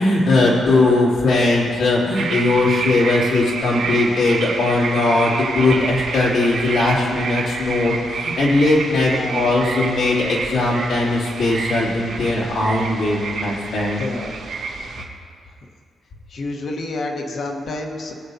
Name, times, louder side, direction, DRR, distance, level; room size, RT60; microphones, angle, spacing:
voice 1, 0.0-14.0, left 2 dB, 75° left, -5 dB, 2.9 m, -19 dB
sound 1, 2.1-15.0, right 4 dB, 75° right, 2.4 m, -28 dB
voice 2, 9.0-9.5 14.0-14.4 16.3-18.1, left 2 dB, 55° left, 2 dB, 1.3 m, -28 dB
21.0 x 7.9 x 2.8 m, 2.3 s
cardioid pair, 130°, 0 cm